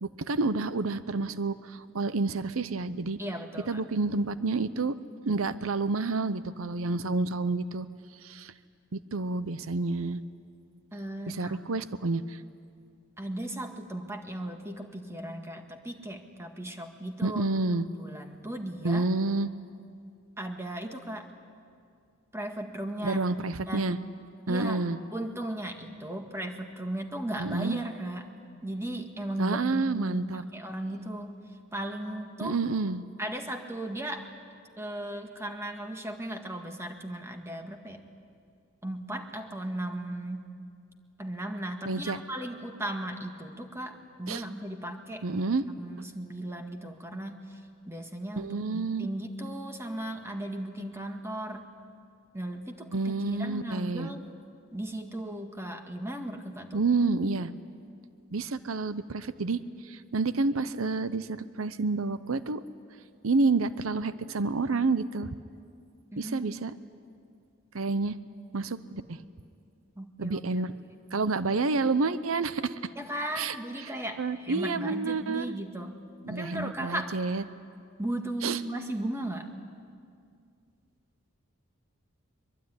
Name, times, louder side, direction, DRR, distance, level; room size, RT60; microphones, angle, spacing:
voice 1, 0.0-3.2 3.7-5.0 5.3-7.9 8.2-8.5 8.9-10.2 11.3-12.4 17.2-17.9 18.8-19.5 23.0-24.0 24.5-25.0 27.4-27.8 29.4-30.4 32.4-33.0 41.9-42.2 44.3-44.4 45.2-45.6 48.4-49.1 52.9-54.1 56.7-57.5 58.3-62.6 63.2-65.3 66.2-66.7 67.7-68.2 68.5-69.2 70.2-70.7 71.1-72.8 73.4-73.5 73.8-73.9 74.2-75.5 76.2-77.4 78.4-78.6, right 3 dB, 80° right, 14 dB, 0.8 m, -29 dB
voice 2, 3.2-3.8 10.9-11.6 13.2-17.4 18.0-19.1 20.4-21.3 22.3-23.2 23.7-24.0 24.5-24.8 25.1-28.3 28.6-29.6 29.9-31.4 31.7-32.6 33.2-34.3 34.8-38.0 38.8-40.5 41.2-45.4 45.8-47.6 47.9-51.7 52.3-54.3 54.7-56.8 66.1-66.6 70.0-70.4 73.0-76.0 76.3-77.1 78.0-79.5, right 1 dB, 15° right, 4 dB, 1.8 m, -36 dB
23.0 x 22.5 x 9.6 m, 2.3 s
head